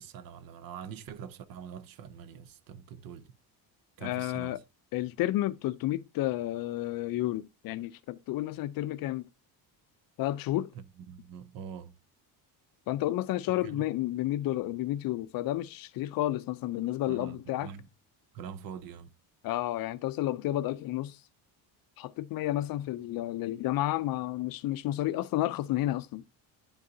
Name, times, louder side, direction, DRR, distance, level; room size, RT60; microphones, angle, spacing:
voice 1, 0.0-3.3 4.0-4.6 10.7-12.0 13.6-13.9 17.1-17.9 18.3-19.1, right 7 dB, 55° right, 0.7 m, -44 dB
voice 2, 4.0-4.6 4.9-9.3 10.2-10.7 12.9-17.7 19.4-21.2 22.0-26.3, left 15 dB, 55° left, 0.5 m, -31 dB
11.0 x 4.0 x 2.7 m
cardioid pair, 155°, 41 cm